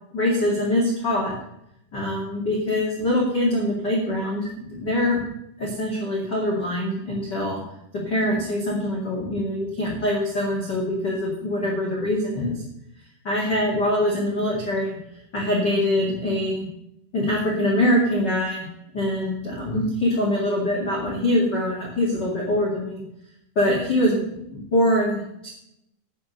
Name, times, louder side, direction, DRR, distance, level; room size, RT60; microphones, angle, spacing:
voice 1, 0.1-1.3 1.9-5.2 5.6-7.6 8.0-12.6 13.2-15.0 15.3-16.7 17.1-18.7 18.9-23.0 23.6-24.2 24.5-25.5, left 1 dB, 30° left, -4 dB, 2.2 m, -23 dB
11.5 x 6.2 x 6.8 m, 0.79 s
omnidirectional pair, 5.0 m